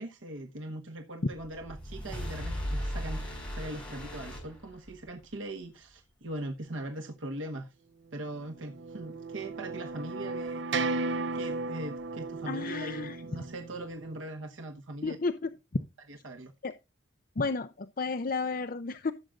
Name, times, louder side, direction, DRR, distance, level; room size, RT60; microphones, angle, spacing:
voice 1, 0.0-7.8 8.1-10.9 11.3-15.2 16.1-16.5, right 1 dB, 80° right, 1.1 m, -40 dB
sound 1, 1.4-5.2, equal, 5° left, 5.5 m, -37 dB
sound 2, 8.4-14.2, right 3 dB, 60° right, 0.6 m, -35 dB
voice 2, 12.5-13.2 15.0-15.8 16.6-16.8 17.4-19.1, left 4 dB, 45° left, 0.6 m, -32 dB
16.0 x 7.7 x 2.5 m
head